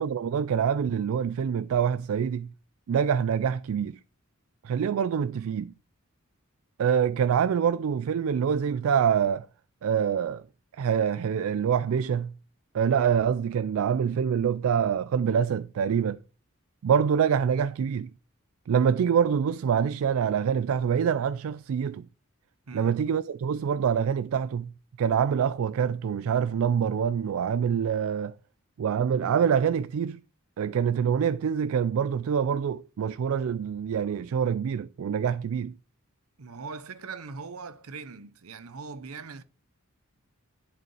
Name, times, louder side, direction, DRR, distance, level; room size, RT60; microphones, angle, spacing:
voice 1, 0.0-2.5 2.9-4.0 4.6-5.7 6.8-9.5 9.8-10.4 10.7-12.3 12.7-16.2 16.8-18.1 18.7-22.1 22.7-24.7 25.0-28.3 28.8-30.2 30.6-35.8, right 7 dB, 70° right, 0.3 m, -25 dB
voice 2, 36.4-39.4, right 4 dB, 85° right, 0.8 m, -40 dB
10.5 x 5.0 x 4.7 m
head